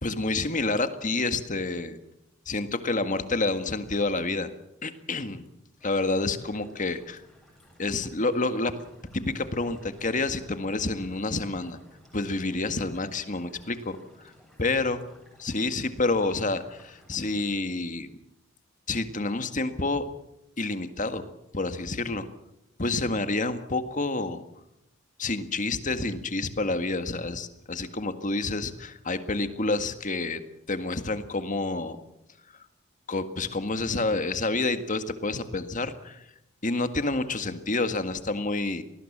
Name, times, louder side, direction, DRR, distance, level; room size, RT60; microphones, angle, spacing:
voice 1, 0.0-2.0 2.5-4.5 4.8-5.5 5.8-7.2 7.8-8.7 9.1-11.8 12.1-14.0 14.2-14.3 14.6-15.0 15.4-18.1 18.9-20.0 20.6-22.3 22.8-24.4 25.2-30.4 30.7-32.0 33.1-36.3 36.6-38.8, left 3 dB, 35° left, 9 dB, 1.8 m, -28 dB
sound 1, 5.8-17.6, equal, ahead, 7.7 m, -57 dB
26.0 x 19.5 x 7.4 m, 0.84 s
head